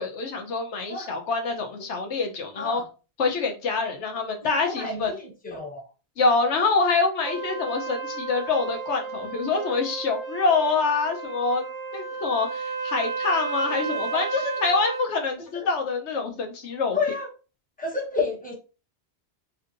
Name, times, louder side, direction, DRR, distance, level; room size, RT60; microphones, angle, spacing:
voice 1, 0.0-2.8 3.2-5.1 6.2-11.6 11.9-17.0, left 4 dB, 85° left, 3 dB, 1.1 m, -25 dB
voice 2, 2.5-2.9 4.4-5.8 13.9-14.2 15.5-15.7 16.9-17.3 17.8-18.5, left 4 dB, 10° left, -2 dB, 0.8 m, -30 dB
Trumpet, 7.2-15.1, right 4 dB, 25° right, 0.6 m, -33 dB
3.4 x 2.9 x 2.5 m, 0.33 s
omnidirectional pair, 1.1 m